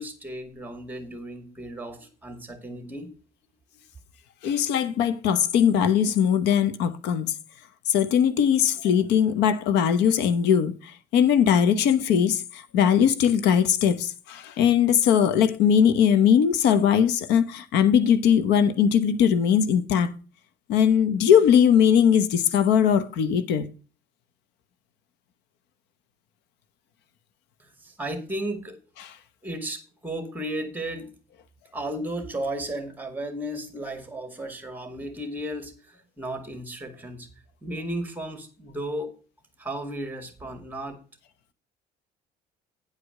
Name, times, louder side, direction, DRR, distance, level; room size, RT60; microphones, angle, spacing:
voice 1, 0.0-3.1 27.6-28.8 29.4-31.1 31.7-37.3 37.6-39.1 39.6-41.0, right 1 dB, 10° right, 2.2 m, -34 dB
voice 2, 4.4-7.3 7.9-20.1 20.7-23.6, left 8 dB, 85° left, 1.0 m, -20 dB
9.9 x 4.9 x 6.4 m
cardioid pair, 110°, 17 cm